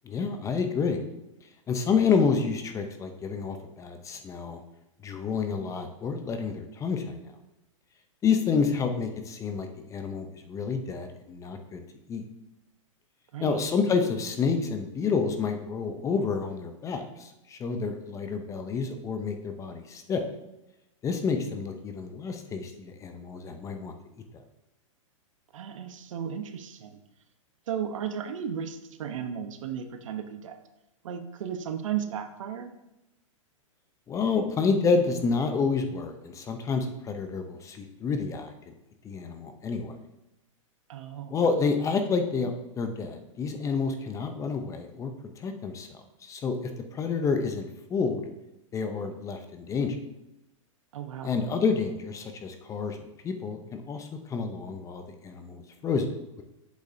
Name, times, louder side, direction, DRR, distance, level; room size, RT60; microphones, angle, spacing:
voice 1, 0.0-1.0 1.7-4.6 5.0-7.3 8.2-11.8 12.1-12.2 13.4-20.2 21.0-23.9 34.1-38.5 39.0-40.0 41.3-45.1 45.4-48.2 48.7-50.0 51.2-56.1, left 5 dB, 20° left, 7 dB, 0.6 m, -29 dB
voice 2, 13.3-13.6 25.5-27.0 27.7-30.6 31.0-32.7 40.9-41.4 50.9-51.3, right 8 dB, 70° right, 8 dB, 0.9 m, -35 dB
8.2 x 6.4 x 2.7 m, 0.92 s
hypercardioid pair, 130°, 17 cm